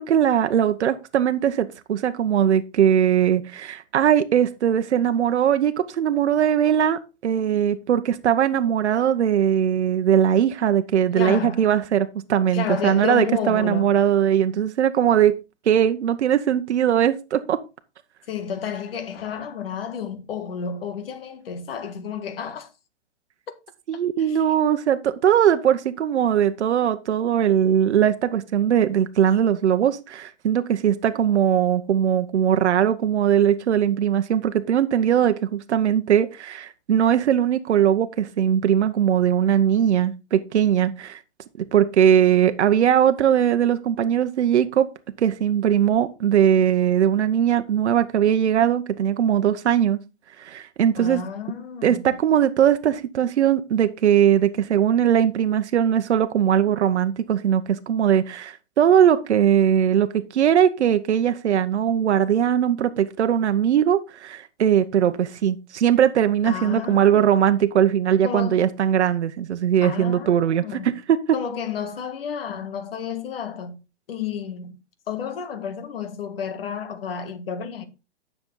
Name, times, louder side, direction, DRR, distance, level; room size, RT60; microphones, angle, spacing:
voice 1, 0.0-15.4 15.7-17.6 23.9-41.2 41.7-44.9 45.2-50.0 50.4-51.2 51.8-71.2, right 9 dB, 85° right, 1.0 m, -20 dB
voice 2, 11.2-11.6 12.5-14.0 18.3-22.7 23.9-24.4 51.0-52.1 66.4-67.4 68.2-68.6 69.8-70.9 71.3-73.8 74.1-74.8 75.1-77.8, left 7 dB, 60° left, 1.8 m, -31 dB
10.0 x 6.8 x 3.8 m
hypercardioid pair, 165°, 33 cm